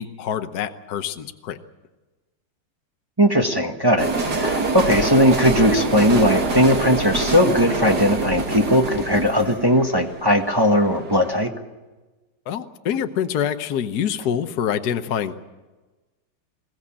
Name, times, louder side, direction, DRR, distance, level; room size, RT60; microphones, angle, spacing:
voice 1, 0.0-1.6 12.5-15.5, left 8 dB, 55° left, 8 dB, 1.3 m, -26 dB
voice 2, 3.2-11.5, equal, 15° right, 3 dB, 0.9 m, -18 dB
sound 1, 4.0-11.0, right 3 dB, 50° right, 2.5 m, -25 dB
21.5 x 16.0 x 8.6 m, 1.2 s
omnidirectional pair, 2.4 m